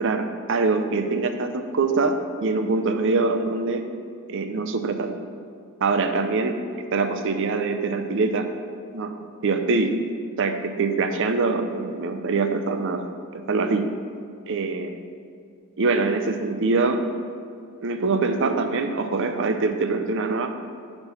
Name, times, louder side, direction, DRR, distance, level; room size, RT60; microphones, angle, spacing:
voice 1, 0.0-3.8 4.3-5.2 5.8-6.6 6.9-8.5 8.9-9.1 9.4-10.0 10.4-13.1 13.3-13.9 14.5-15.0 15.8-17.0 17.8-20.5, right 3 dB, 60° right, 7 dB, 0.5 m, -24 dB
7.6 x 4.6 x 5.6 m, 2.1 s
head